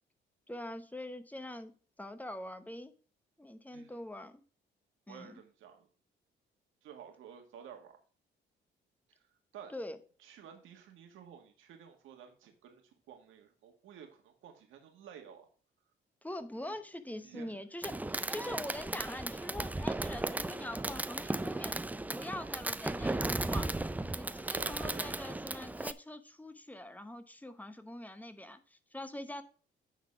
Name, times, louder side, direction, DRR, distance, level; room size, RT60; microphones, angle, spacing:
voice 1, 0.5-2.9 3.4-4.4 5.1-5.4 9.7-10.0 16.2-23.7 24.1-29.4, left 1 dB, 10° left, 0.9 m, -44 dB
voice 2, 5.1-5.9 6.8-8.0 9.1-9.2 9.5-9.7 10.2-12.8 13.1-15.5 16.7-16.8 17.2-17.6 24.5-25.1, right 8 dB, 85° right, 1.8 m, -52 dB
Fireworks, 17.8-25.9, right 2 dB, 10° right, 0.4 m, -36 dB
9.3 x 4.1 x 6.0 m
cardioid pair, 90°, 20 cm